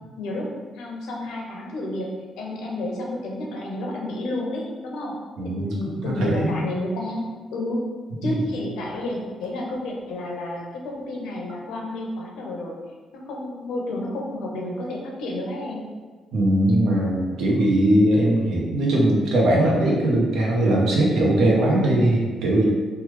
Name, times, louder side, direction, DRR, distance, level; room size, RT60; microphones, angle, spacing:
voice 1, 0.2-5.1 5.6-7.8 8.2-12.7 13.1-15.8, left 1 dB, 85° left, -1 dB, 0.6 m, -31 dB
voice 2, 5.4-5.7 6.0-6.5 8.2-8.4 16.3-22.7, right 1 dB, 80° right, -2 dB, 0.7 m, -20 dB
3.1 x 2.3 x 3.0 m, 1.4 s
cardioid pair, 90°, 0 cm